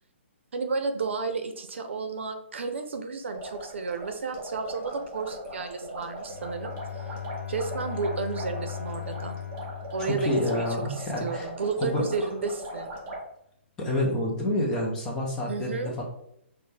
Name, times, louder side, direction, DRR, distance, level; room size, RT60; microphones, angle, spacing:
voice 1, 0.5-7.1 7.5-9.4 9.9-13.0 15.5-15.9, right 4 dB, 70° right, 7 dB, 0.7 m, -32 dB
sound 1, 3.3-13.2, right 1 dB, 15° right, 0.8 m, -39 dB
Bowed string instrument, 6.2-11.0, left 10 dB, 90° left, 0.6 m, -38 dB
voice 2, 10.0-11.5 11.8-12.3 13.8-16.0, left 1 dB, 10° left, -2 dB, 0.5 m, -28 dB
5.9 x 2.2 x 3.4 m, 0.76 s
hypercardioid pair, 175°, 7 cm